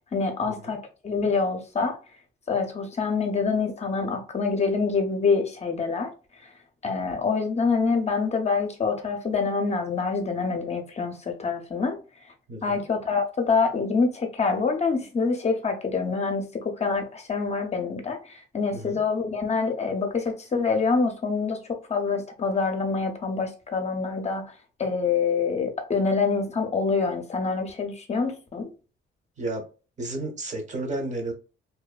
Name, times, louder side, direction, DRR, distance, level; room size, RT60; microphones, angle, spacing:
voice 1, 0.1-2.0 2.5-6.1 6.8-12.0 12.6-24.5 24.8-28.7, left 4 dB, 35° left, 0.6 m, -26 dB
voice 2, 12.5-12.8 18.7-19.0 29.4-29.6 30.0-31.3, right 2 dB, 35° right, 0.8 m, -32 dB
2.6 x 2.1 x 2.2 m
cardioid pair, 90°, 20 cm